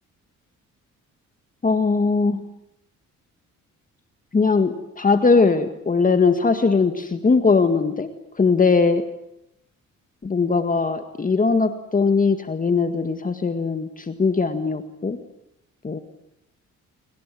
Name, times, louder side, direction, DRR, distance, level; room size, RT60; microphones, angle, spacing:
voice 1, 1.6-2.4 4.3-8.1 8.4-9.0 10.2-15.2 15.8-16.0, left 4 dB, 25° left, 8 dB, 1.8 m, -20 dB
28.5 x 24.0 x 7.7 m, 0.81 s
cardioid pair, 90°, 30 cm